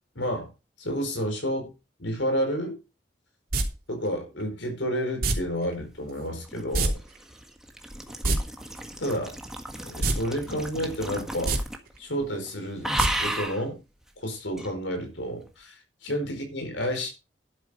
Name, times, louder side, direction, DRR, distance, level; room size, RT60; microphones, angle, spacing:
voice 1, 0.1-0.5 0.8-1.7 2.0-2.8 3.9-7.0 9.0-9.3 9.8-11.5 12.0-13.8 14.2-17.1, equal, 85° left, 4 dB, 4.8 m, -30 dB
sound 1, 3.5-3.6 5.2-5.3 6.7-6.9 7.2-7.3 8.1-8.4 10.0-10.2 10.5-10.6 11.3-11.6 13.0-13.1 13.4-13.5, right 2 dB, 50° right, 3.2 m, -24 dB
sound 2, 6.2-12.0 12.2-12.5 12.8-13.6 14.6-14.7, right 1 dB, 5° right, 1.6 m, -34 dB
11.5 x 9.2 x 5.1 m, 0.30 s
head